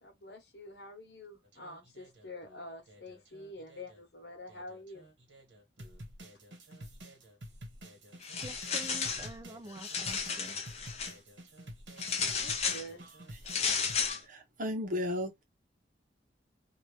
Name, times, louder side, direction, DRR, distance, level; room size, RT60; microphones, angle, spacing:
voice 1, 0.0-5.1 12.4-13.0, left 1 dB, 60° left, 1.2 m, -47 dB
sound 1, 1.4-4.0 4.5-14.1, right 1 dB, 90° right, 1.4 m, -50 dB
sound 2, 8.2-9.3 9.7-11.1 12.0-12.9 13.5-14.2, left 5 dB, 35° left, 0.6 m, -33 dB
voice 2, 8.4-10.6, right 1 dB, 20° right, 0.4 m, -47 dB
voice 3, 14.3-15.4, left 1 dB, 45° right, 0.9 m, -34 dB
2.8 x 2.5 x 3.2 m
head